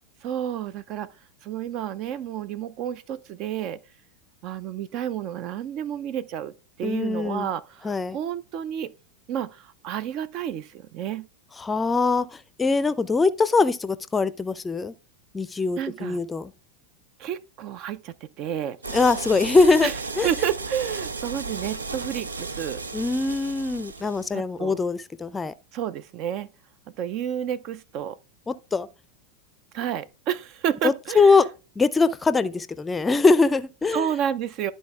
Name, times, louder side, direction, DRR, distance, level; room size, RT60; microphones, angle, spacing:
voice 1, 0.2-1.1 1.4-3.8 4.4-6.5 6.8-8.9 9.3-11.3 15.8-16.2 17.2-18.8 19.8-19.9 20.2-22.8 24.3-24.8 25.7-26.5 27.0-28.2 29.7-31.3 33.9-34.7, right 10 dB, 45° right, 0.6 m, -30 dB
voice 2, 6.8-7.5 7.8-8.2 11.6-14.9 15.3-16.5 18.9-19.9 20.2-20.3 22.9-25.5 28.5-28.9 30.8-31.5 31.8-34.1, left 4 dB, 15° left, 0.5 m, -22 dB
sound 1, 18.8-24.3, right 3 dB, 90° right, 0.7 m, -34 dB
11.5 x 4.1 x 3.4 m
hypercardioid pair, 90°, 0 cm